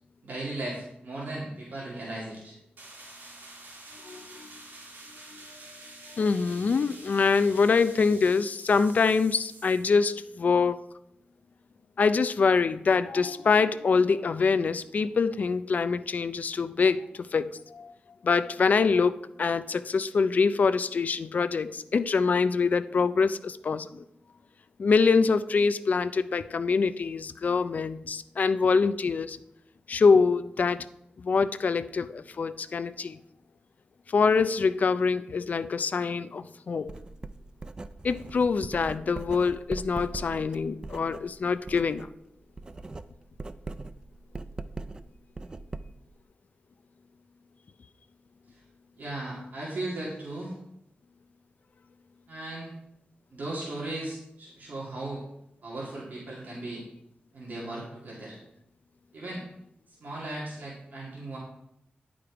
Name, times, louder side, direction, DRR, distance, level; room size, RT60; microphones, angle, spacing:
voice 1, 0.2-2.6 48.5-48.6 48.9-50.5 52.3-52.7 53.3-55.2 55.6-56.8 57.3-58.4 59.1-59.4 60.0-61.4, right 2 dB, 60° right, -6 dB, 2.5 m, -37 dB
sound 1, 2.8-10.0, right 2 dB, 85° right, 2.7 m, -48 dB
voice 2, 4.0-4.6 5.3-5.5 6.2-10.8 12.0-17.9 18.2-24.0 24.8-29.4 29.9-30.9 31.2-33.2 34.1-36.9 38.0-42.1, left 5 dB, 50° left, 13 dB, 0.4 m, -25 dB
Writing, 36.9-42.1 42.4-46.1, right 3 dB, 25° right, 0.3 m, -40 dB
10.5 x 5.1 x 4.7 m, 0.78 s
wide cardioid pair, 165°, 3 cm